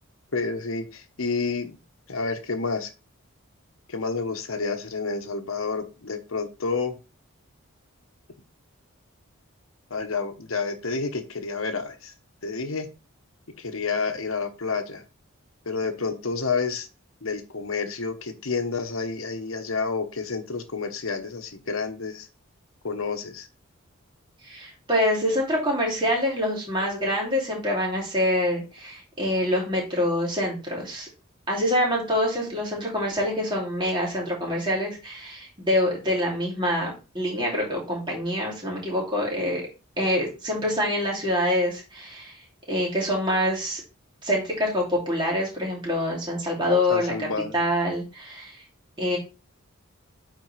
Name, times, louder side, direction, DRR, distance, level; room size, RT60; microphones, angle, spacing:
voice 1, 0.3-0.8 1.2-1.7 2.1-2.9 3.9-6.9 9.9-11.9 12.4-12.9 13.6-15.0 15.7-16.9 17.2-22.2 22.8-23.4 46.9-47.5, left 4 dB, 75° left, 8 dB, 1.1 m, -29 dB
voice 2, 24.4-31.1 31.5-39.6 40.0-42.4 42.7-43.8 44.2-48.6 49.0-49.2, left 1 dB, 20° right, -2 dB, 2.7 m, -26 dB
8.8 x 4.3 x 3.3 m, 0.31 s
head